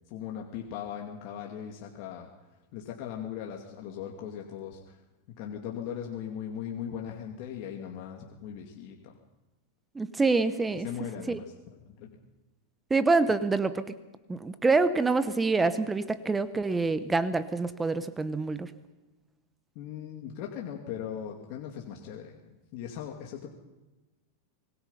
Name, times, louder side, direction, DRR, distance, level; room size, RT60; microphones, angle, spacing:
voice 1, 0.1-2.3 2.7-5.0 5.3-9.2 10.7-12.1 19.7-23.5, left 9 dB, 50° left, 1 dB, 2.5 m, -39 dB
voice 2, 10.0-10.9 11.3-11.4 12.9-13.8 14.3-18.7, right 3 dB, 10° right, 13 dB, 0.9 m, -26 dB
25.0 x 20.5 x 5.7 m, 1.1 s
supercardioid pair, 140°, 0 cm